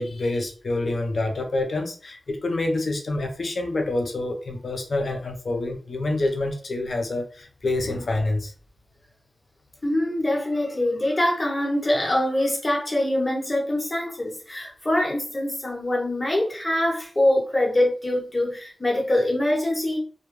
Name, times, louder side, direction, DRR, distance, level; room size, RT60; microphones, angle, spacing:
voice 1, 0.0-8.5, left 2 dB, 70° left, 0.6 m, -27 dB
voice 2, 9.8-20.0, left 1 dB, 35° left, 1.0 m, -24 dB
2.2 x 2.1 x 3.1 m
cardioid pair, 50°, 0 cm